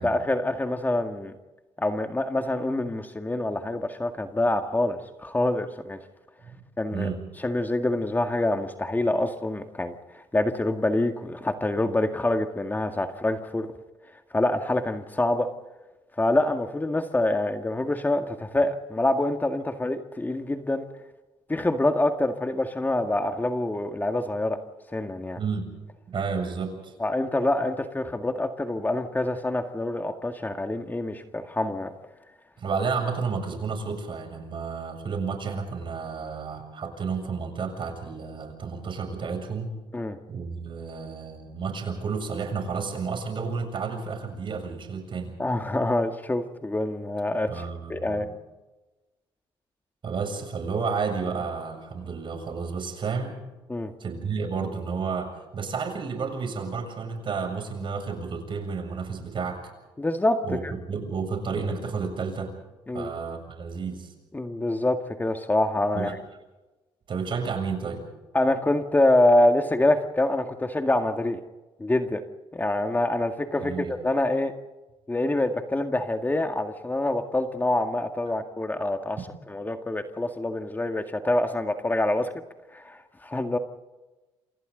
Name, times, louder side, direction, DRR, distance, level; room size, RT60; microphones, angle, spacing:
voice 1, 0.0-1.3 1.8-6.0 6.8-13.7 14.3-15.5 16.2-20.9 21.5-24.6 24.9-25.4 27.0-31.9 39.9-40.2 45.4-48.3 53.7-53.9 60.0-60.7 62.9-63.1 64.3-66.2 68.3-71.4 71.8-72.2 72.5-74.5 75.1-79.2 79.5-82.3 82.7-83.6, left 1 dB, 15° left, 6 dB, 1.9 m, -26 dB
voice 2, 6.9-7.2 25.4-25.7 26.1-26.9 32.6-39.7 40.3-45.3 47.5-48.2 50.0-53.4 54.0-59.7 60.4-60.6 60.9-62.5 62.9-64.1 65.9-66.1 67.1-68.1 73.6-73.9, right 5 dB, 50° right, 5 dB, 7.3 m, -31 dB
28.0 x 27.0 x 4.0 m, 1.1 s
cardioid pair, 75°, 11 cm